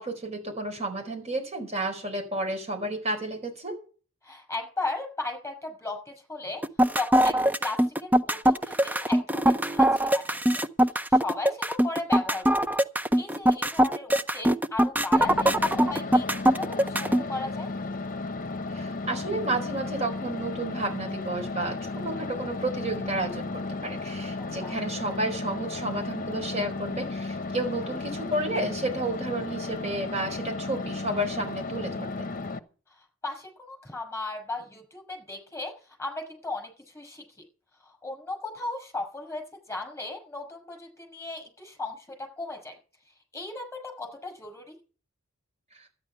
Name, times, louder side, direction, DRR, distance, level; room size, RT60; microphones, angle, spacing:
voice 1, 0.0-3.7 18.7-32.3, right 2 dB, 30° right, 2 dB, 4.6 m, -31 dB
voice 2, 4.2-6.6 6.9-10.6 11.1-12.8 13.2-17.7 24.6-24.7 33.2-35.7 36.0-37.2 37.8-42.8 43.3-44.8, left 2 dB, 10° left, 3 dB, 5.9 m, -36 dB
sound 1, 6.6-17.2, right 1 dB, 10° right, 0.5 m, -22 dB
sound 2, 15.1-32.6, left 3 dB, 40° left, 1.0 m, -34 dB
13.0 x 9.9 x 5.7 m, 0.38 s
head